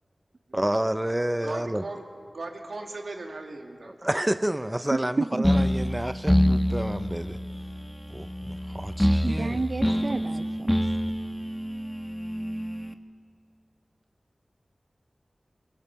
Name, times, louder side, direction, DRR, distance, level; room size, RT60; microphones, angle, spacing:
voice 1, 0.5-1.8 4.0-7.4 8.1-9.6, right 1 dB, 15° right, 11 dB, 0.6 m, -29 dB
voice 2, 1.4-4.1, right 2 dB, 80° right, 2 dB, 2.5 m, -38 dB
voice 3, 4.9-5.5 9.2-11.0, right 3 dB, 60° right, 10 dB, 0.6 m, -30 dB
sound 1, 5.4-12.9, equal, 5° left, 1.2 m, -26 dB
24.0 x 22.5 x 7.2 m, 2.2 s
wide cardioid pair, 50°, 0 cm